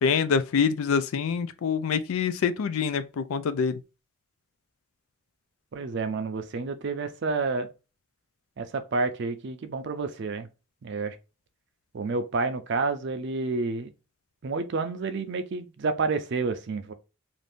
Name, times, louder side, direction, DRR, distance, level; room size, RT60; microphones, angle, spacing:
voice 1, 0.0-3.8, left 6 dB, 75° left, 0.3 m, -25 dB
voice 2, 5.7-7.7 8.6-10.5 10.8-11.2 11.9-13.9 14.4-16.9, right 3 dB, 55° right, 0.4 m, -29 dB
2.6 x 2.5 x 3.4 m
head